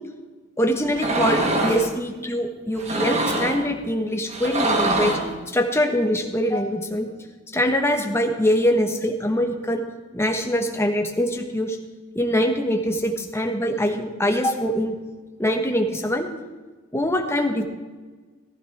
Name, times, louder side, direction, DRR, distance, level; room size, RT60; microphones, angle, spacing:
voice 1, 0.6-5.1 5.5-7.1 7.5-9.8 10.1-11.8 12.1-14.9 15.4-16.3 16.9-17.6, equal, 15° left, 3 dB, 1.4 m, -23 dB
sound 1, 0.9-1.9 2.8-3.6 4.3-5.3, right 2 dB, 35° right, 1.5 m, -23 dB
15.0 x 15.0 x 3.6 m, 1.3 s
head